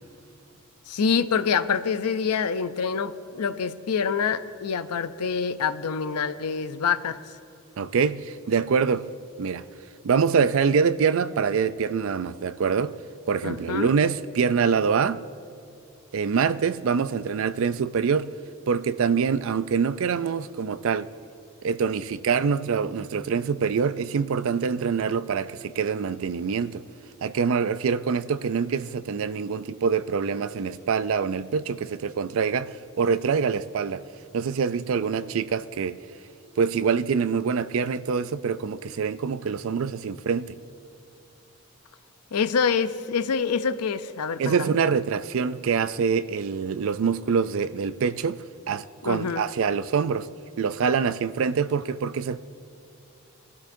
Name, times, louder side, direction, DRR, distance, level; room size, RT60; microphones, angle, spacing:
voice 1, 0.9-7.2 13.4-13.9 42.3-44.7 49.0-49.4, left 6 dB, 90° left, 0.5 m, -26 dB
voice 2, 7.8-9.1 9.4-9.7 10.0-13.0 13.3-15.2 16.1-18.3 18.7-21.1 21.6-26.8 27.2-34.0 34.3-36.0 36.6-40.6 44.4-50.3 50.6-52.4, right 6 dB, 65° right, 0.4 m, -25 dB
20.0 x 12.5 x 2.6 m
head